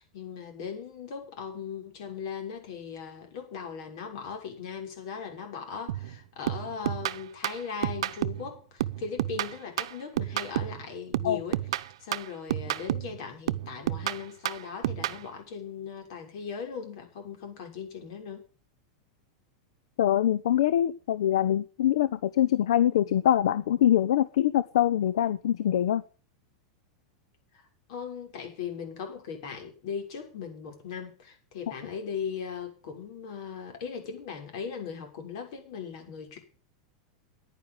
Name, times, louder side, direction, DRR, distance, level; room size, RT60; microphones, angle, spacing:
voice 1, 0.0-11.6 12.0-18.4 27.5-36.4, left 6 dB, 65° left, 4 dB, 6.4 m, -38 dB
sound 1, 5.9-6.2 6.5-8.5 8.8-10.8 11.1-13.2 13.5-15.2, right 13 dB, 80° right, 0.8 m, -31 dB
voice 2, 20.0-26.0, left 11 dB, 80° left, 15 dB, 0.9 m, -24 dB
10.5 x 9.8 x 9.1 m, 0.38 s
supercardioid pair, 135°, 3 cm